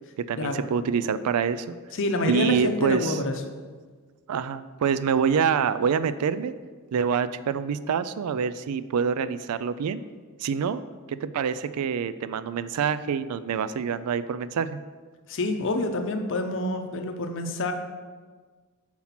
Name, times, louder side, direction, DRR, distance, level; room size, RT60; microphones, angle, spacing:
voice 1, 0.2-1.8 2.3-3.2 4.3-6.5 6.9-10.0 10.4-10.8 11.1-14.8, right 6 dB, 85° right, 14 dB, 0.3 m, -26 dB
voice 2, 1.9-3.3 15.3-17.7, left 2 dB, 60° left, 6 dB, 0.7 m, -27 dB
5.7 x 4.4 x 5.8 m, 1.5 s
head